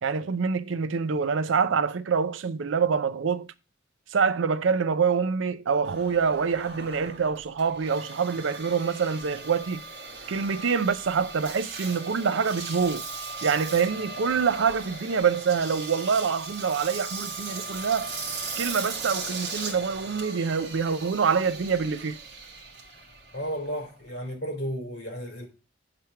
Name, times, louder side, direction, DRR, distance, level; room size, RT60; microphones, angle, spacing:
voice 1, 0.0-3.5 4.1-9.8 10.3-13.0 13.4-18.1 18.6-22.2, right 6 dB, 85° right, 0.5 m, -26 dB
Engine, 5.8-24.3, right 4 dB, 60° right, 1.5 m, -38 dB
voice 2, 23.3-25.5, equal, 60° left, 2.8 m, -33 dB
6.9 x 3.3 x 5.6 m
head